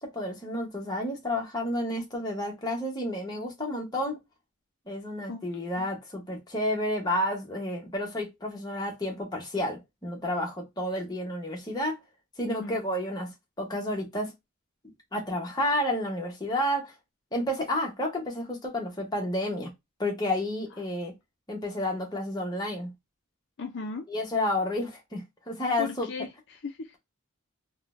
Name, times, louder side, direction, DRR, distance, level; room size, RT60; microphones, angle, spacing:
voice 1, 0.0-4.2 4.9-12.0 12.4-13.3 13.6-14.3 15.1-16.9 17.3-19.7 20.0-21.1 21.5-22.9 24.1-26.1, left 1 dB, 20° left, 0.9 m, -30 dB
voice 2, 12.4-12.7 23.6-24.0 25.8-26.9, left 4 dB, 55° left, 0.4 m, -37 dB
3.7 x 2.2 x 2.5 m
head